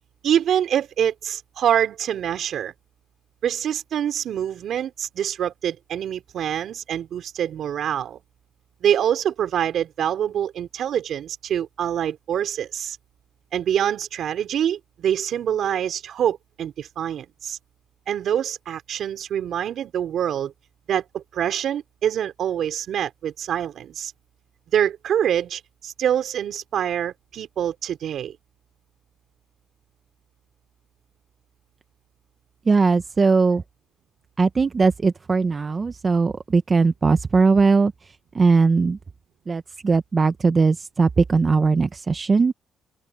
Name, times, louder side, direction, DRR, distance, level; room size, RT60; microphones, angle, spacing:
voice 1, 0.2-2.7 3.4-8.2 8.8-13.0 13.5-17.6 18.1-20.5 20.9-24.1 24.7-28.4, right 9 dB, 70° right, 4.2 m, -25 dB
voice 2, 32.7-33.6 34.4-37.9 38.3-39.0 39.5-42.5, right 4 dB, 35° right, 0.9 m, -19 dB
open air
cardioid pair, 90°, 0 cm